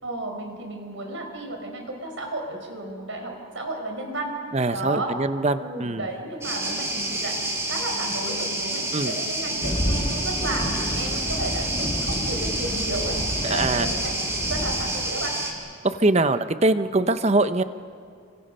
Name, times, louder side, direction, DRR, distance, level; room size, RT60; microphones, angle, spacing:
voice 1, 0.0-4.3 4.7-5.2 5.6-7.4 7.6-13.2 13.5-15.3, right 2 dB, 65° right, 3 dB, 5.0 m, -33 dB
voice 2, 4.5-6.1 8.9-9.1 13.4-13.9 15.8-17.6, right 2 dB, 30° right, 11 dB, 0.8 m, -22 dB
sound 1, 6.4-15.5, right 1 dB, 15° right, 3.1 m, -29 dB
sound 2, 9.6-15.1, equal, 25° left, 1.7 m, -30 dB
29.5 x 25.5 x 5.6 m, 2.3 s
head